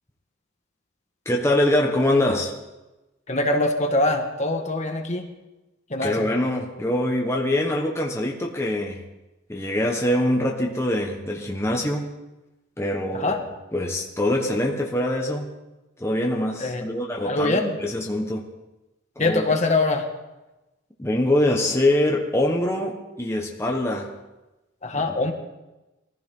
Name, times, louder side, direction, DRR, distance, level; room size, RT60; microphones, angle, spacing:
voice 1, 1.2-2.5 6.0-9.0 9.5-12.1 12.8-13.4 13.7-15.5 16.0-18.4 19.2-19.4 21.0-24.1 24.9-25.3, left 1 dB, 15° left, 0 dB, 1.4 m, -24 dB
voice 2, 3.3-5.3 5.9-6.3 13.1-13.4 16.6-16.9 17.2-17.8 19.2-20.1 24.8-25.3, left 2 dB, 35° left, 4 dB, 1.5 m, -23 dB
22.0 x 15.0 x 3.9 m, 1.0 s
head